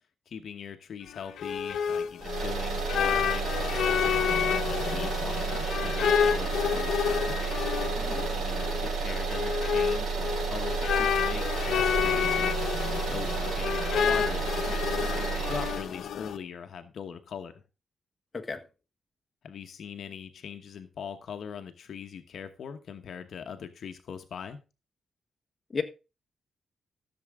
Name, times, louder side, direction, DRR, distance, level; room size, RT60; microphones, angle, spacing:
voice 1, 0.3-7.4 8.1-12.6 13.1-17.5 19.4-24.6, left 7 dB, 65° left, 1.0 m, -41 dB
sound 1, 1.1-16.4, left 8 dB, 85° left, 0.9 m, -29 dB
sound 2, 2.2-15.9, right 5 dB, 80° right, 4.7 m, -31 dB
voice 2, 8.0-8.3 18.3-18.6 25.7-25.8, left 4 dB, 30° left, 1.3 m, -33 dB
14.5 x 7.0 x 3.6 m
wide cardioid pair, 135°, 0 cm